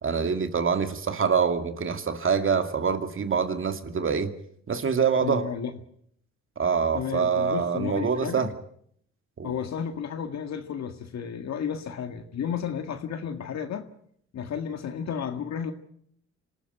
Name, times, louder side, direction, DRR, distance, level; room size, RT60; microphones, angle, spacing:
voice 1, 0.0-4.3 4.7-5.5 6.6-8.5 9.4-9.5, right 6 dB, 45° right, 2.2 m, -25 dB
voice 2, 5.2-5.7 6.9-8.5 9.4-13.9 14.3-15.7, left 7 dB, 60° left, 1.9 m, -32 dB
26.0 x 14.0 x 9.1 m
cardioid pair, 90°, 30 cm